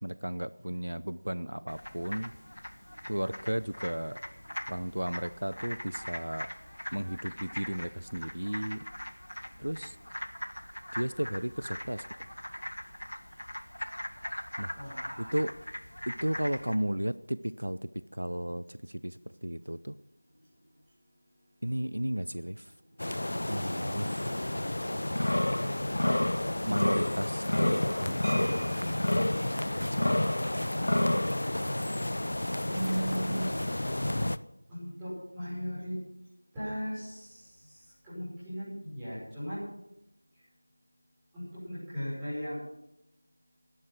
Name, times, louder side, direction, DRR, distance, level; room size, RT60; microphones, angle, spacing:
voice 1, 0.0-2.3 3.1-4.2 4.7-6.5 6.9-8.8 9.6-10.0 10.9-12.0 14.6-14.7 15.2-15.5 16.1-20.0 21.6-22.7 23.5-24.2 26.6-29.0 29.7-30.3, right 1 dB, 75° right, 15 dB, 0.6 m, -34 dB
sound 1, 1.7-16.8, equal, 80° left, 1.6 m, -42 dB
voice 2, 14.7-15.4 24.2-24.3 32.7-33.5 34.7-36.0 36.5-37.5 38.0-39.6 41.3-42.6, equal, 5° right, -15 dB, 6.2 m, -36 dB
sound 2, 23.0-34.4, left 1 dB, 50° left, 0.6 m, -29 dB
sound 3, 28.2-29.3 30.8-30.9 31.2-31.4 31.8-32.1, right 1 dB, 25° right, 1.6 m, -46 dB
18.0 x 11.0 x 6.1 m, 0.86 s
figure-of-eight pair, 175°, 0 cm